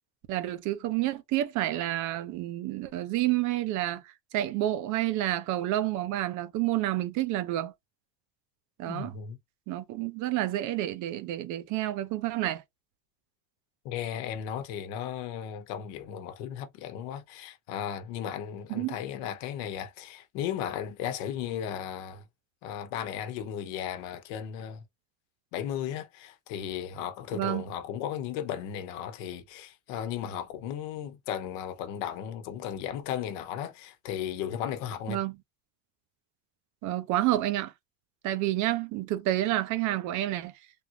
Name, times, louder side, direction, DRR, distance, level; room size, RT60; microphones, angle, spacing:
voice 1, 0.3-7.7 8.8-9.1 9.7-12.6 18.7-19.0 27.3-27.6 35.1-35.3 36.8-37.7 38.2-40.5, right 14 dB, 60° right, 0.7 m, -29 dB
voice 2, 8.8-9.4 13.8-22.2 22.6-24.8 25.5-35.2, left 9 dB, 80° left, 0.9 m, -35 dB
3.6 x 2.4 x 2.7 m
cardioid pair, 140°, 34 cm